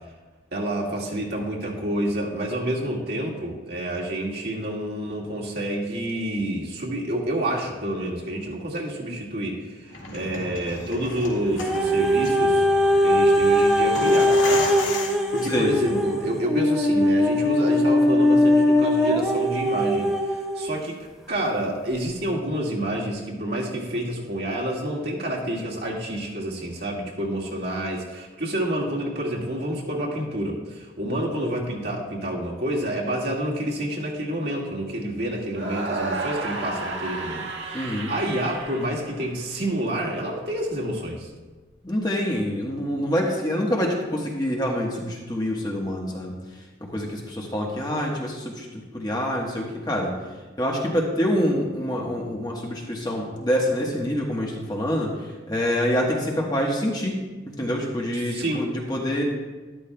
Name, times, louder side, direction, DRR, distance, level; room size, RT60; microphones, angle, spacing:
voice 1, 0.5-12.7 13.0-14.7 15.0-21.0 21.3-41.3 58.2-58.7, right 1 dB, 55° right, -2 dB, 1.9 m, -28 dB
sound 1, 9.8-16.0, left 3 dB, 85° left, 2.1 m, -35 dB
sound 2, 11.6-20.7 21.3-21.4, left 1 dB, ahead, 0.9 m, -20 dB
sound 3, 35.5-39.7, right 3 dB, 75° right, 1.6 m, -32 dB
voice 2, 37.7-38.1 41.8-46.4 46.8-50.1 50.6-57.2 57.6-59.2, equal, 20° left, -1 dB, 1.3 m, -26 dB
12.5 x 12.5 x 2.3 m, 1.3 s
head